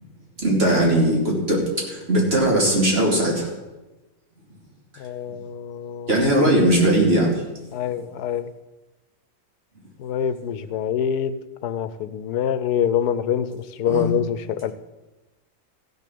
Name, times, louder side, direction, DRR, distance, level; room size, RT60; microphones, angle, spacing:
voice 1, 0.4-3.5 6.1-7.3 13.9-14.1, right 1 dB, 40° right, -3 dB, 3.3 m, -19 dB
voice 2, 5.0-6.1 7.7-8.5 10.0-11.4 11.6-14.7, left 9 dB, 85° left, 13 dB, 1.2 m, -25 dB
15.0 x 6.8 x 6.8 m, 1.1 s
omnidirectional pair, 1.7 m